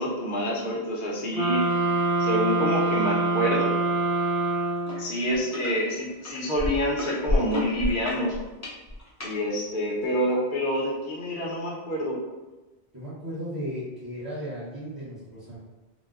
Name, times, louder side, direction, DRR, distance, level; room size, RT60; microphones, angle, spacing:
voice 1, 0.0-1.6 2.2-3.7 5.0-8.4 9.2-12.2, equal, 55° left, -3 dB, 0.8 m, -27 dB
sound 1, 1.3-5.2, right 2 dB, 50° right, 0.4 m, -25 dB
sound 2, 4.9-5.0 5.3-5.7 6.3-9.3 10.0-10.1, left 1 dB, 20° left, 0.5 m, -29 dB
voice 2, 12.9-15.6, equal, 25° right, -9 dB, 0.8 m, -35 dB
3.8 x 2.1 x 2.4 m, 1.2 s
omnidirectional pair, 1.1 m